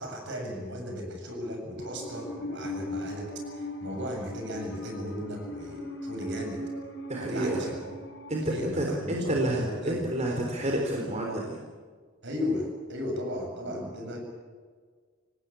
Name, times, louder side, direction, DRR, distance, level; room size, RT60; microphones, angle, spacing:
voice 1, 0.0-6.6 7.3-7.8 8.4-10.0 12.2-14.2, left 1 dB, 60° right, 3 dB, 7.5 m, -36 dB
Musical instrument, 1.8-8.6, left 1 dB, 60° left, 5.7 m, -39 dB
voice 2, 7.1-7.6 8.3-11.6 13.6-13.8, right 1 dB, 35° right, 0 dB, 4.0 m, -29 dB
26.5 x 18.5 x 8.6 m, 1.6 s
head